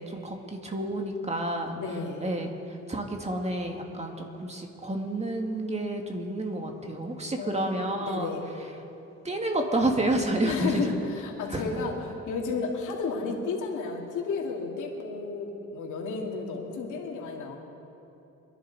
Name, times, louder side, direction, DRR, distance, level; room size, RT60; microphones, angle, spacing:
voice 1, 0.0-1.8 2.2-2.5 2.9-8.3 9.2-10.8 11.5-11.8, right 1 dB, 20° right, 3 dB, 2.1 m, -30 dB
voice 2, 1.7-2.3 7.4-8.4 10.4-17.6, left 4 dB, 80° left, -1 dB, 2.6 m, -32 dB
25.5 x 11.0 x 4.2 m, 2.9 s
cardioid pair, 90°, 30 cm